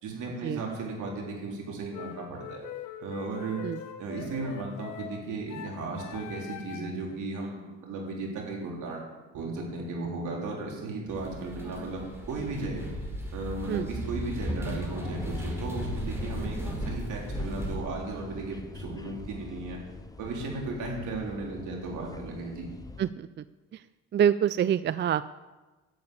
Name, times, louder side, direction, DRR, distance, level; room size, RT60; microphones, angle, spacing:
voice 1, 0.0-2.6 3.0-3.6 4.0-9.0 9.3-12.9 13.3-19.8 20.2-22.7, right 3 dB, 80° right, -1 dB, 3.9 m, -35 dB
sound 1, 1.9-7.0, left 9 dB, 85° left, 1.3 m, -42 dB
sound 2, 11.1-17.8, equal, 10° right, 4.5 m, -35 dB
sound 3, 15.1-23.1, left 3 dB, 10° left, 0.6 m, -44 dB
voice 2, 23.0-23.4 23.7-23.8 24.1-25.3, right 9 dB, 40° right, 16 dB, 0.4 m, -26 dB
11.0 x 8.7 x 8.6 m, 1.2 s
cardioid pair, 90°, 30 cm